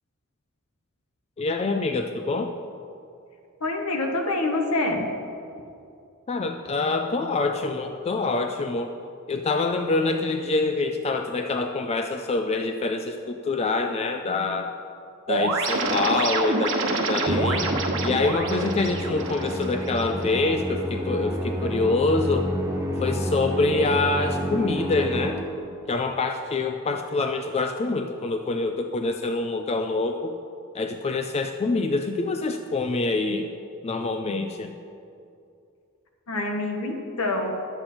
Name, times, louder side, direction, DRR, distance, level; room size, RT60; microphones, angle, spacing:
voice 1, 1.4-2.5 6.3-8.9 9.3-14.7 15.3-17.7 18.0-22.5 23.0-25.4 25.9-30.4 30.7-33.5 33.8-34.7, left 3 dB, 30° left, 5 dB, 0.4 m, -25 dB
voice 2, 3.6-5.1 36.3-37.5, left 2 dB, 75° left, 3 dB, 1.2 m, -26 dB
sound 1, 15.3-20.2, right 3 dB, 60° right, 1.2 m, -27 dB
Musical instrument, 17.3-25.8, equal, 15° right, 1.1 m, -29 dB
11.0 x 7.8 x 4.4 m, 2.5 s
head